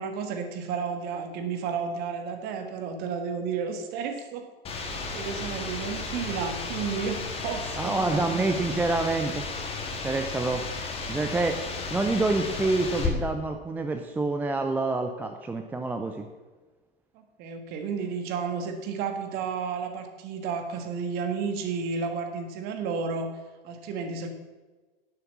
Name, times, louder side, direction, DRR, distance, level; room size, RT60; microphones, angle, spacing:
voice 1, 0.0-4.5 5.1-8.4 17.1-23.3 23.6-24.3, right 5 dB, 35° right, 6 dB, 1.7 m, -32 dB
sound 1, 4.6-13.1, left 4 dB, 20° left, 2.1 m, -34 dB
voice 2, 7.8-9.4 10.0-10.6 11.1-11.6 11.9-16.3, right 3 dB, 5° right, 6 dB, 0.5 m, -27 dB
11.0 x 7.8 x 7.2 m, 1.3 s
figure-of-eight pair, 100°, 29 cm